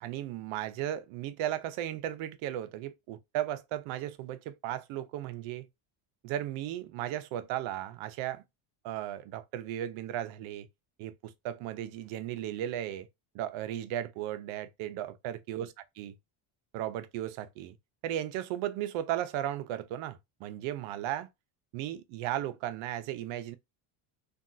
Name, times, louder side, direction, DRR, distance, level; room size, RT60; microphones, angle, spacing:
voice 1, 0.0-5.7 6.2-8.4 8.8-10.7 11.0-13.1 13.3-16.1 16.7-17.8 18.0-21.3 21.7-23.6, right 12 dB, 75° right, 0.7 m, -35 dB
3.4 x 2.4 x 2.5 m
cardioid pair, 145°, 48 cm